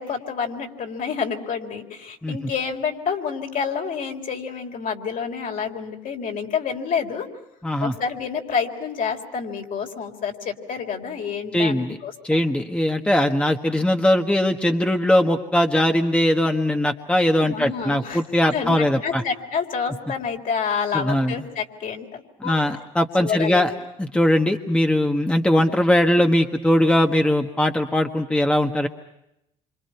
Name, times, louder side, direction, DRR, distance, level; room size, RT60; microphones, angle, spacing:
voice 1, 0.0-7.3 7.8-12.5 17.5-18.2 18.5-22.8 23.2-23.7, left 6 dB, 55° left, 3 dB, 3.9 m, -28 dB
voice 2, 7.6-7.9 11.5-12.0 12.2-19.2 20.9-21.3 22.4-23.7 24.0-28.9, left 1 dB, 5° left, 4 dB, 1.5 m, -20 dB
27.5 x 26.0 x 5.9 m, 0.84 s
supercardioid pair, 95°, 17 cm